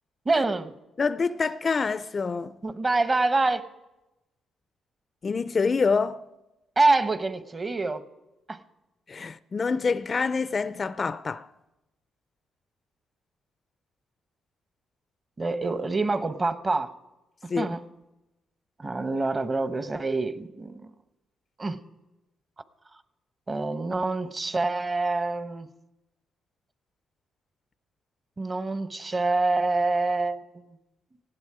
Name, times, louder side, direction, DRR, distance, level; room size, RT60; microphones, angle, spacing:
voice 1, 0.2-0.7 2.6-3.7 6.8-8.0 8.5-8.6 15.4-16.9 17.4-17.8 18.8-20.9 21.6-21.8 23.5-25.7 28.4-30.4, right 3 dB, 30° right, 0.9 m, -26 dB
voice 2, 1.0-2.6 5.2-6.2 9.1-11.5 17.5-17.8, left 4 dB, 35° left, 0.4 m, -26 dB
18.5 x 16.0 x 4.8 m
cardioid pair, 90°, 0 cm